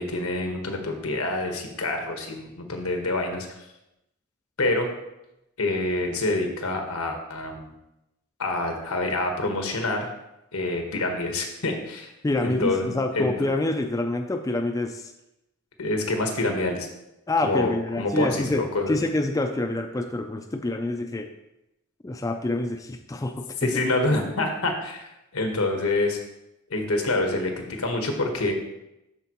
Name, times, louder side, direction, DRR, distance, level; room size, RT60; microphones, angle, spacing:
voice 1, 0.0-3.5 4.6-4.9 5.6-7.7 8.4-10.1 10.5-12.1 12.4-12.9 13.1-13.3 15.8-16.9 17.4-19.0 23.6-25.1 25.3-26.2 26.7-28.5, left 2 dB, 85° left, 3 dB, 1.3 m, -26 dB
voice 2, 12.2-15.1 17.3-21.3 22.0-23.7, left 2 dB, 15° left, 5 dB, 0.3 m, -27 dB
12.5 x 4.4 x 3.0 m, 0.88 s
head